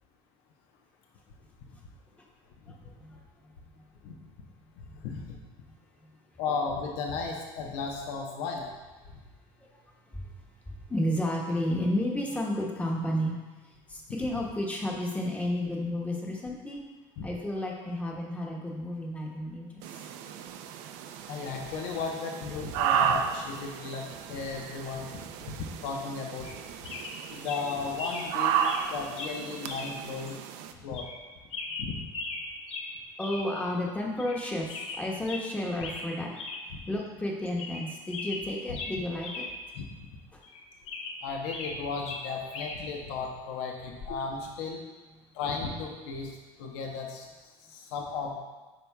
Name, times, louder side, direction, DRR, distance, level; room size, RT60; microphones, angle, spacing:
voice 1, 2.7-3.2 4.1-4.2 10.1-10.2 10.9-13.3 13.9-16.8 17.2-19.9 33.2-36.3 36.9-39.4 40.3-40.4, left 1 dB, 10° left, -1 dB, 1.1 m, -32 dB
voice 2, 4.8-5.4 6.4-8.7 17.2-17.3 21.3-25.1 25.4-26.5 26.9-27.0 27.3-28.5 28.9-30.4 30.8-31.1 31.8-32.0 36.7-36.8 39.7-39.9 41.2-44.8 45.3-47.3 47.7-48.3, left 4 dB, 80° left, 1 dB, 0.9 m, -35 dB
sound 1, 19.8-30.7, right 8 dB, 70° right, 0.5 m, -33 dB
sound 2, 26.4-26.6 26.8-27.2 27.4-27.6 28.0-28.3 28.6-28.9 29.2-29.3 29.7-29.9 30.3-30.4 30.9-31.2 31.5-32.4 32.7-32.9 33.2-33.4 33.7-33.8 34.2-34.4 34.7-35.5 35.8-36.1 36.3-36.6 37.0-37.1 37.5-37.8 38.1-39.5 39.8-39.9 40.4-41.8 42.0-42.8 44.0-44.2, left 3 dB, 50° left, 1.0 m, -38 dB
9.2 x 5.5 x 2.3 m, 1.3 s
cardioid pair, 135°, 13 cm